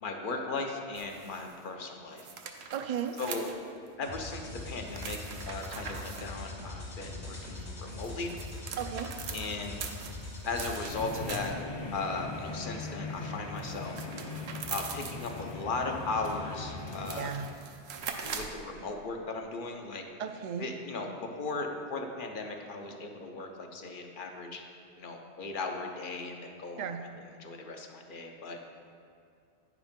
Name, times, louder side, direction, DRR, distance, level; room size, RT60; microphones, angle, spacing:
voice 1, 0.0-2.3 3.2-3.4 4.0-5.2 5.5-8.3 9.3-9.8 10.4-11.5 11.9-14.1 14.7-17.4 18.1-20.0 20.6-24.6 25.0-28.6, left 3 dB, 55° left, 3 dB, 0.9 m, -37 dB
sound 1, 1.0-1.6 2.2-3.9 4.9-6.3 7.8-11.8 13.6-15.6 16.5-16.6 16.9-18.6, right 6 dB, 75° right, 0.9 m, -42 dB
voice 2, 2.7-3.1 8.8-9.1 17.2-17.5 20.2-20.7 26.8-27.0, right 8 dB, 55° right, 8 dB, 0.5 m, -34 dB
sound 2, 4.0-10.9, left 2 dB, 80° left, 2.0 m, -42 dB
sound 3, 10.9-17.3, left 3 dB, 30° left, 0.6 m, -40 dB
9.6 x 5.0 x 5.1 m, 2.4 s
omnidirectional pair, 1.1 m